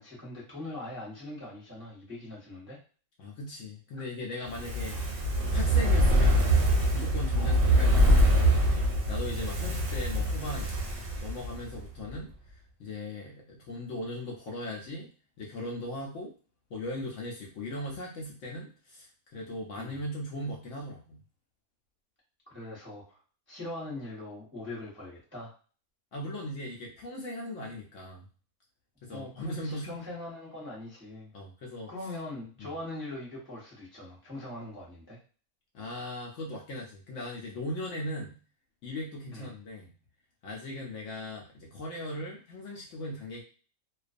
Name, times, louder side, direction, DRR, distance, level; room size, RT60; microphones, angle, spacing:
voice 1, 0.0-2.8 4.9-5.1 7.3-7.6 19.8-20.0 22.5-23.2 23.5-25.5 29.1-31.3 31.9-35.2 39.3-39.5, left 2 dB, 10° right, -7 dB, 0.6 m, -41 dB
voice 2, 3.2-5.0 5.5-6.5 6.9-8.4 9.1-10.8 11.2-15.1 15.4-16.3 16.7-21.2 26.1-28.2 29.0-30.0 31.3-31.9 32.6-32.7 35.7-38.4 38.8-39.9 40.4-43.4, left 1 dB, 65° left, -1 dB, 0.8 m, -38 dB
Fire, 4.5-11.8 12.1-12.2, right 1 dB, 55° right, 0.6 m, -24 dB
2.4 x 2.3 x 2.4 m, 0.38 s
omnidirectional pair, 1.6 m